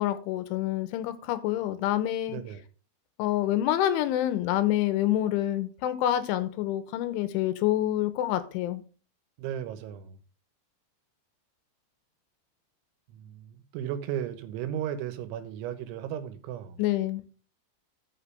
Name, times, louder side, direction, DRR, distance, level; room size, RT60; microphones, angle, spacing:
voice 1, 0.0-2.4 3.2-8.8 16.8-17.2, left 13 dB, 85° left, 3.2 m, -27 dB
voice 2, 2.3-2.6 9.4-10.2 13.1-16.8, right 10 dB, 80° right, 3.4 m, -35 dB
12.5 x 6.0 x 3.3 m
omnidirectional pair, 5.6 m